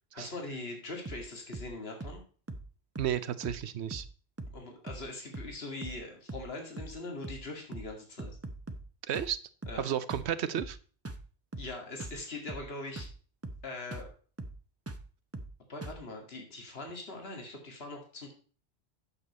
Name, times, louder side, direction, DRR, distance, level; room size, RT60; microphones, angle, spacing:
voice 1, 0.1-2.2 4.5-8.3 9.7-9.9 11.6-13.1 13.6-14.1 15.7-18.3, left 2 dB, 70° left, 2 dB, 2.3 m, -42 dB
sound 1, 1.1-1.3 1.5-1.7 2.0-2.2 2.5-2.7 3.0-3.2 3.4-3.7 3.9-4.1 4.4-4.6 4.9-5.1 5.3-5.6 5.8-6.0 6.3-6.5 6.8-7.0 7.2-7.5 7.7-7.9 8.2-8.9 9.1-9.4 9.6-9.8 10.1-10.3 10.6-10.8 11.1-11.3 11.5-11.7 12.0-12.2 12.5-12.7 13.0-13.2 13.4-13.7 13.9-14.1 14.4-14.6 14.9-15.1 15.3-15.6 15.8-16.0, right 2 dB, 15° right, 0.7 m, -42 dB
voice 2, 3.0-4.0 9.1-9.4 9.8-10.8, right 10 dB, 85° right, 14 dB, 1.0 m, -32 dB
8.6 x 6.7 x 4.1 m, 0.40 s
omnidirectional pair, 1.1 m